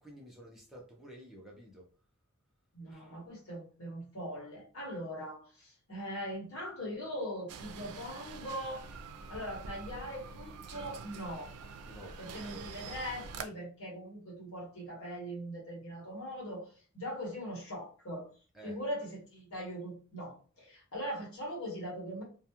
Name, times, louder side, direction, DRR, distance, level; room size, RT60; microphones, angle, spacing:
voice 1, 0.0-1.9 2.9-3.1 11.9-12.2 12.4-12.8 18.5-18.8, right 1 dB, ahead, -3 dB, 0.6 m, -51 dB
voice 2, 2.7-8.9 9.3-11.5 12.2-16.7 16.9-18.3 18.6-22.2, equal, 70° left, -3 dB, 1.2 m, -41 dB
sound 1, 7.5-13.4, right 5 dB, 90° right, 0.4 m, -46 dB
2.3 x 2.3 x 2.9 m, 0.38 s
head